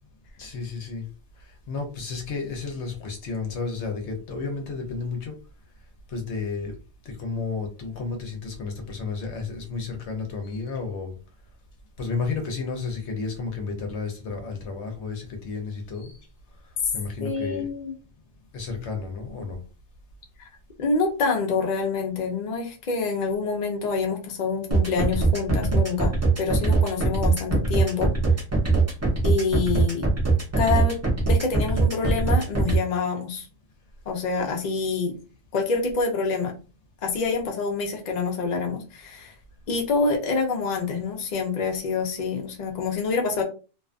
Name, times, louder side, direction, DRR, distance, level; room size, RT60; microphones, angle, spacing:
voice 1, 0.4-1.0 1.4-5.3 6.1-6.7 7.0-11.1 12.0-16.2 16.9-17.7 18.5-19.6, left 4 dB, 65° left, 4 dB, 0.9 m, -32 dB
voice 2, 17.2-17.9 20.8-28.1 29.2-30.1 30.6-31.0 31.2-33.5 34.1-35.1 35.5-36.5 37.0-39.3 39.7-43.4, left 4 dB, 50° left, 1 dB, 0.5 m, -26 dB
sound 1, 24.7-32.8, right 3 dB, 20° right, 0.5 m, -21 dB
2.5 x 2.3 x 2.4 m, 0.34 s
omnidirectional pair, 1.3 m